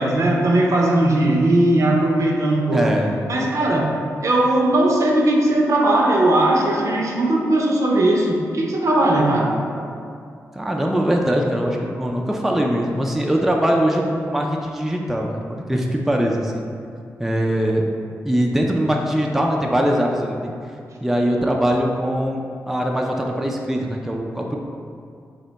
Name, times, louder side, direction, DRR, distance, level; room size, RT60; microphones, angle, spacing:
voice 1, 0.0-2.9 3.3-3.9 4.2-9.6, right 1 dB, 60° right, -1 dB, 0.5 m, -18 dB
voice 2, 2.7-3.2 10.5-16.6 17.2-17.9 18.2-20.5 21.0-24.6, equal, 5° right, 0 dB, 0.3 m, -21 dB
2.7 x 2.2 x 3.8 m, 2.4 s
cardioid pair, 55°, 6 cm